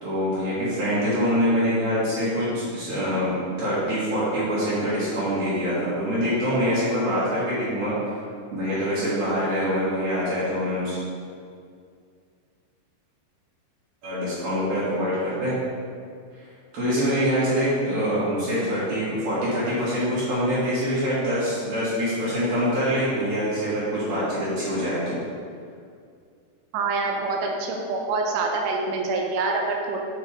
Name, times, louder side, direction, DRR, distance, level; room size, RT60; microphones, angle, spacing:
voice 1, 0.0-3.3 3.6-7.9 8.5-11.0 14.0-15.6 16.7-25.2, equal, 55° right, -11 dB, 3.3 m, -24 dB
voice 2, 26.7-30.0, right 3 dB, 80° right, 1 dB, 2.8 m, -26 dB
9.3 x 5.8 x 3.6 m, 2.2 s
omnidirectional pair, 5.6 m